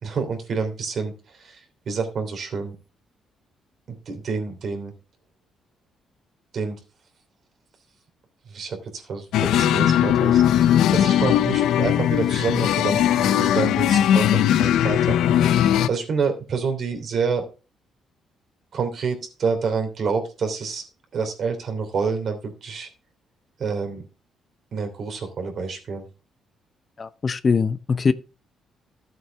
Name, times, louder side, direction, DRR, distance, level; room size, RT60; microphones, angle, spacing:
voice 1, 0.0-1.1 1.4-1.6 1.9-2.7 3.9-4.9 6.5-6.8 8.5-10.4 10.9-15.5 15.9-17.4 18.7-20.8 21.1-22.9 23.6-24.0 24.7-26.0, right 5 dB, 55° right, 3.1 m, -28 dB
sound 1, 9.3-15.9, left 10 dB, 85° left, 0.6 m, -19 dB
voice 2, 27.0-28.1, left 5 dB, 40° left, 0.7 m, -22 dB
13.5 x 7.7 x 3.4 m
cardioid pair, 90°, 0 cm